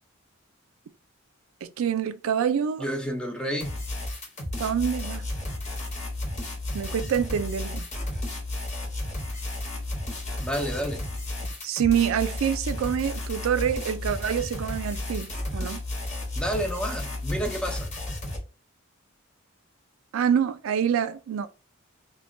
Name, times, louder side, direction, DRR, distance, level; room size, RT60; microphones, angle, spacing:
voice 1, 1.6-2.9 4.6-5.3 6.7-7.9 11.6-15.8 20.1-21.5, right 8 dB, 75° right, 0.3 m, -26 dB
voice 2, 2.8-3.8 10.4-11.1 16.3-17.9, equal, 5° left, 0.4 m, -30 dB
sound 1, 3.6-18.4, left 1 dB, 35° left, 0.8 m, -33 dB
2.2 x 2.1 x 3.6 m
head